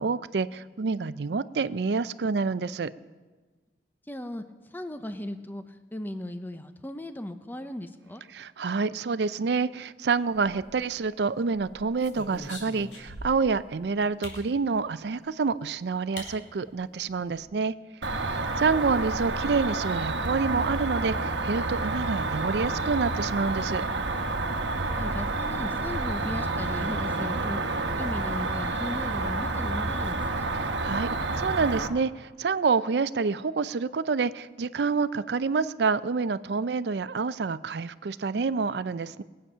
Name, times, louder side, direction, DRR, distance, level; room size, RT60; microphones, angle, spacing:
voice 1, 0.0-2.9 8.3-17.7 18.1-23.8 30.5-31.1 31.4-39.2, right 4 dB, 65° right, 15 dB, 0.5 m, -28 dB
voice 2, 4.1-8.2 17.3-17.5 25.0-27.6 28.0-30.5, left 1 dB, 10° left, 9 dB, 0.7 m, -37 dB
sound 1, 10.3-11.0 11.5-13.5 14.2-14.5 15.6-15.7 16.2-16.3 16.6-16.7 17.0-17.4, left 1 dB, 85° left, 3.0 m, -42 dB
Cricket, 18.0-31.9, right 2 dB, 90° right, 1.1 m, -29 dB
21.0 x 8.7 x 5.6 m, 1.3 s
head